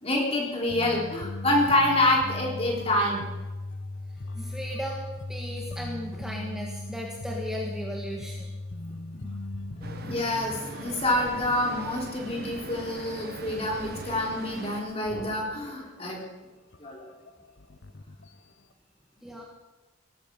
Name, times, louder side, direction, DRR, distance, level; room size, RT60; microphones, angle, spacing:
voice 1, 0.0-3.2 9.1-9.2 9.9-16.2 16.8-17.0, left 1 dB, 30° left, -1 dB, 3.5 m, -27 dB
sound 1, 0.7-10.9 11.2-11.4 11.7-11.8 12.3-14.9 15.3-15.8 16.2-16.3 16.7-18.6, left 2 dB, 60° left, 0.8 m, -38 dB
voice 2, 4.3-8.5 19.2-19.4, equal, 5° right, -2 dB, 1.6 m, -36 dB
Traffic noise roadway noise, 9.8-14.8, right 2 dB, 50° right, 1.4 m, -40 dB
18.0 x 13.0 x 5.3 m, 1.1 s
head